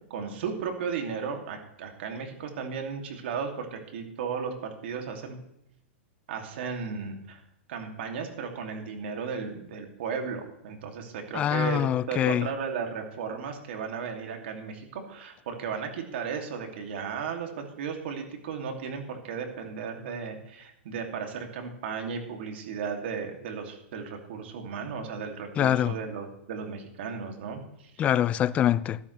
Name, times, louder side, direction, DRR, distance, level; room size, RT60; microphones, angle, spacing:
voice 1, 0.0-5.4 6.3-7.4 7.7-27.9, right 6 dB, 65° right, 2.6 m, -35 dB
voice 2, 11.3-12.5 25.6-25.9 28.0-29.0, left 11 dB, 20° left, 0.3 m, -24 dB
13.0 x 12.5 x 3.3 m
hypercardioid pair, 150°, 7 cm